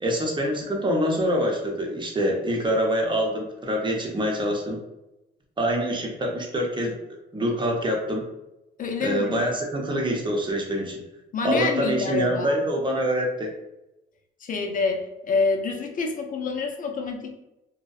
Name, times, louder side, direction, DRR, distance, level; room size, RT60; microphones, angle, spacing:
voice 1, 0.0-4.8 5.6-8.3 9.0-11.0 11.4-13.5, equal, 25° right, 0 dB, 0.7 m, -25 dB
voice 2, 8.8-9.4 11.3-12.5 14.4-17.4, left 4 dB, 45° left, 3 dB, 0.5 m, -27 dB
2.6 x 2.1 x 2.3 m, 0.93 s
cardioid pair, 90°, 20 cm